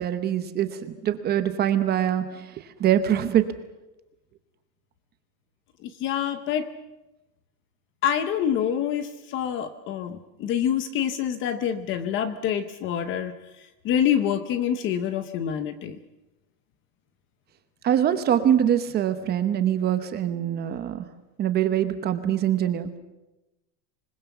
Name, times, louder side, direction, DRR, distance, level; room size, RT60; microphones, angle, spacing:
voice 1, 0.0-3.5 17.8-21.1 21.4-22.9, right 10 dB, 20° right, 10 dB, 0.9 m, -24 dB
voice 2, 5.8-6.7 8.0-13.3 13.8-16.0, left 9 dB, 25° left, 12 dB, 0.8 m, -26 dB
26.0 x 20.5 x 7.1 m, 1.0 s
supercardioid pair, 165°, 50 cm